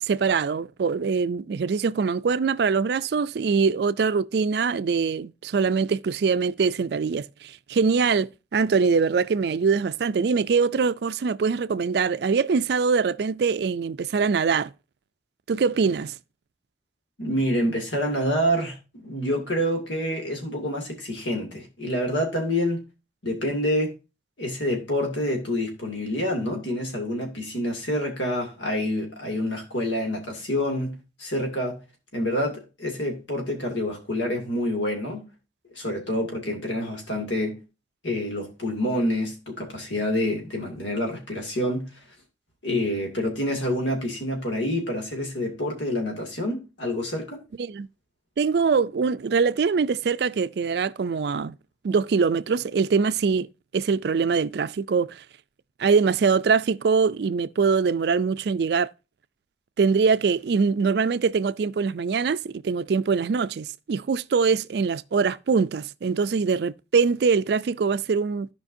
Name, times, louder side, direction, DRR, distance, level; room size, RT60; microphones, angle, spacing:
voice 1, 0.0-14.7 15.5-16.1 47.6-47.9 48.4-51.5 51.8-53.5 53.7-55.2 55.8-58.9 59.8-68.5, right 5 dB, 60° right, 0.4 m, -23 dB
voice 2, 17.2-22.9 23.2-23.9 24.4-31.8 32.1-35.2 35.8-37.6 38.0-41.9 42.6-47.4, left 1 dB, 85° left, 2.4 m, -27 dB
15.0 x 5.1 x 2.6 m
head